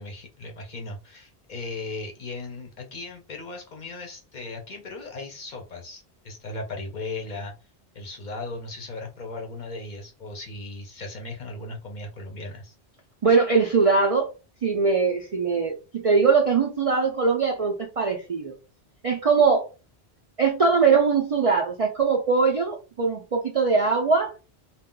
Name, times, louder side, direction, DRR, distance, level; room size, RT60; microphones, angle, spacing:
voice 1, 0.0-7.5 7.9-12.7, left 2 dB, 50° left, 2 dB, 0.7 m, -37 dB
voice 2, 13.2-14.3 14.6-18.5 19.0-19.7 20.4-24.3, right 5 dB, 55° right, 1 dB, 0.4 m, -21 dB
2.3 x 2.2 x 3.6 m, 0.32 s
omnidirectional pair, 1.1 m